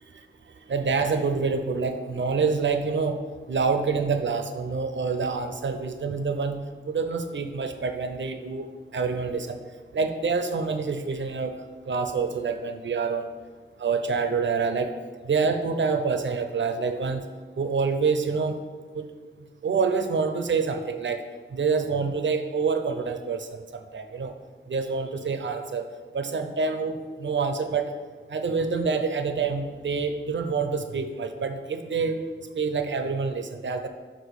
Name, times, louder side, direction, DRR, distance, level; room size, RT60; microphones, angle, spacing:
voice 1, 0.7-3.2 3.5-8.7 8.9-9.6 9.9-11.5 11.9-13.3 13.8-14.9 15.2-17.2 17.6-18.6 18.9-19.1 19.6-21.2 21.5-24.3 24.7-25.9 26.1-27.9 28.3-32.2 32.5-33.9, right 5 dB, 65° right, 8 dB, 0.7 m, -27 dB
5.9 x 5.1 x 6.4 m, 1.5 s
wide cardioid pair, 85°, 21 cm